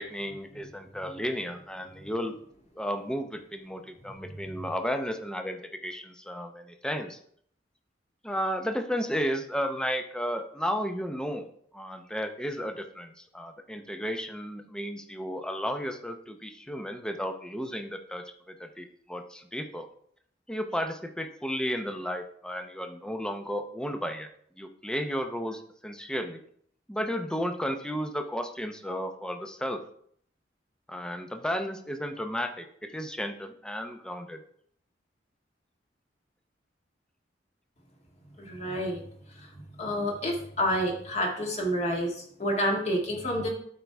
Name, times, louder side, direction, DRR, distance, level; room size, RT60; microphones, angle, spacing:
voice 1, 0.0-2.3 2.8-7.2 8.2-11.5 11.7-19.9 20.5-24.3 24.6-26.4 26.9-29.8 30.9-34.4, equal, 5° left, 6 dB, 0.6 m, -33 dB
voice 2, 38.4-39.0 39.8-43.5, equal, 40° left, 0 dB, 1.9 m, -29 dB
12.0 x 4.7 x 3.4 m, 0.64 s
head